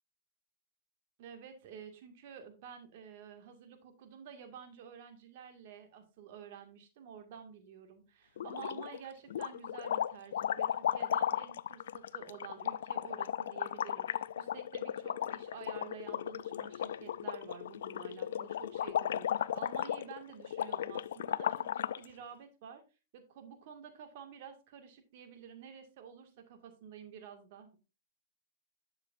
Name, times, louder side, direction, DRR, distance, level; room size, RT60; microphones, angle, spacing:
voice 1, 1.2-22.8 23.1-27.7, right 7 dB, 60° right, 6 dB, 2.0 m, -50 dB
sound 1, 8.4-9.0 9.3-22.0, left 10 dB, 75° left, 0.3 m, -35 dB
11.0 x 6.7 x 2.6 m, 0.30 s
hypercardioid pair, 115°, 0 cm